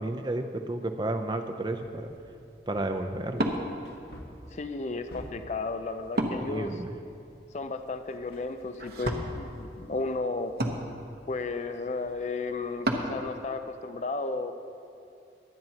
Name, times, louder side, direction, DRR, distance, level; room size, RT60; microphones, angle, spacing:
voice 1, 0.0-2.1 2.7-3.5 6.5-6.9, right 2 dB, 25° right, 6 dB, 0.6 m, -32 dB
Wood, 1.7-13.2, right 1 dB, 60° right, 1.0 m, -37 dB
Wood 2, 2.5-2.6 3.8-5.6 8.3-9.1 9.4-9.5, equal, 65° left, 1.4 m, -47 dB
voice 2, 4.5-6.8 7.5-10.5 11.3-14.5, left 3 dB, 40° left, 8 dB, 0.5 m, -33 dB
23.0 x 9.3 x 2.9 m, 2.6 s
head